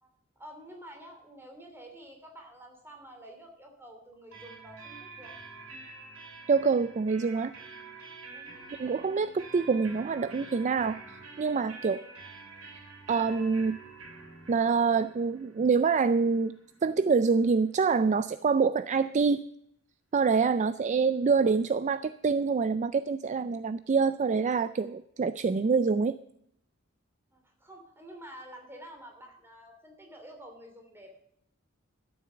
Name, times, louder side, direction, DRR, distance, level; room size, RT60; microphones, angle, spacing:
voice 1, 0.0-5.4 8.3-8.5 20.6-20.8 27.3-31.2, right 1 dB, 10° right, 3 dB, 2.8 m, -49 dB
sound 1, 4.3-17.9, right 3 dB, 85° right, 4.7 m, -48 dB
voice 2, 6.5-7.5 8.8-11.0 11.4-12.0 13.1-13.8 14.5-16.5 16.8-19.4 20.1-26.2, right 5 dB, 35° right, 14 dB, 0.3 m, -26 dB
13.0 x 7.6 x 6.8 m, 0.74 s
head